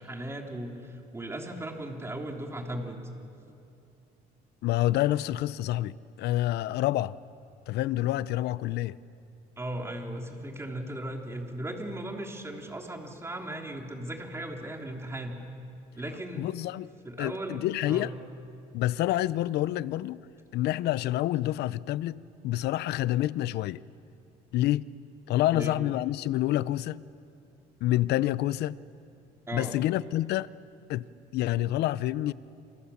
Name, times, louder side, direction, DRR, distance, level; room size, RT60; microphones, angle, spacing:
voice 1, 0.0-3.0 9.6-15.4 16.0-16.4 17.0-18.1 25.5-25.8 29.5-29.7, right 1 dB, 15° right, 3.5 m, -37 dB
voice 2, 4.6-7.2 7.7-9.0 16.4-18.1 18.7-20.2 20.5-23.8 24.5-24.8 25.3-27.1 27.8-28.8 29.5-30.5 30.9-31.1 31.3-32.3, left 14 dB, 75° left, 0.6 m, -28 dB
27.5 x 27.5 x 7.2 m
cardioid pair, 110°, 17 cm